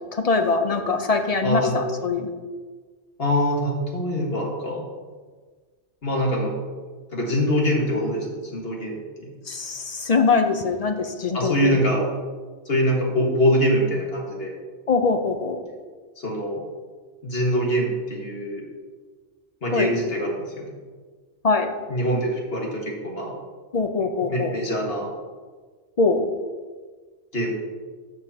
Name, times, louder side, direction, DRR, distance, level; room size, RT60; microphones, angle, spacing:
voice 1, 0.2-2.3 9.5-11.8 14.9-15.6 19.7-19.9 21.4-21.7 23.7-24.6 26.0-26.2, left 4 dB, 40° left, 6 dB, 0.6 m, -22 dB
voice 2, 1.4-1.8 3.2-4.8 6.0-6.5 7.1-9.3 11.3-12.0 12.7-14.5 16.2-16.6 17.2-18.7 19.6-20.7 21.9-23.3 24.3-25.1 27.3-27.5, equal, 55° left, -2 dB, 1.9 m, -24 dB
12.5 x 6.8 x 2.9 m, 1.5 s
omnidirectional pair, 1.2 m